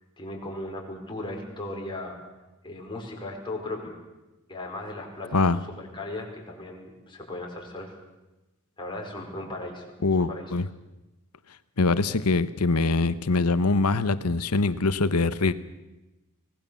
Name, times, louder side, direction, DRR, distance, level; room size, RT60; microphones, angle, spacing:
voice 1, 0.2-2.2 2.6-4.0 4.5-8.0 8.8-10.5, left 2 dB, 20° left, -1 dB, 5.2 m, -37 dB
voice 2, 10.0-10.7 11.8-15.5, left 3 dB, 85° left, 13 dB, 1.1 m, -23 dB
24.5 x 19.0 x 7.2 m, 1.0 s
head